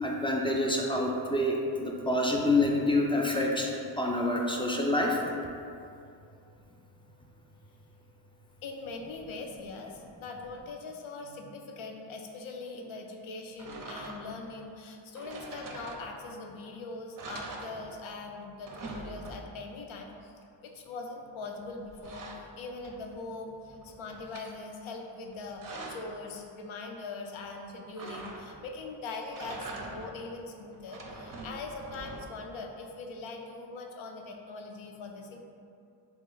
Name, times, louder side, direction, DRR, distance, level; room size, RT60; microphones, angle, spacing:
voice 1, 0.0-3.7 4.0-5.2, left 1 dB, 15° left, -1 dB, 0.3 m, -27 dB
voice 2, 8.6-20.4 20.6-35.4, left 3 dB, 75° left, 2 dB, 0.6 m, -42 dB
sound 1, 13.6-14.5 15.1-16.4 16.8-16.9 17.2-18.2 18.5-19.7 21.4-23.2 23.6-24.5 25.2-26.2 28.0-28.8 29.2-30.3 30.7-32.5, right 2 dB, 45° right, 0.5 m, -44 dB
3.0 x 2.4 x 3.9 m, 2.5 s
cardioid pair, 60°, 48 cm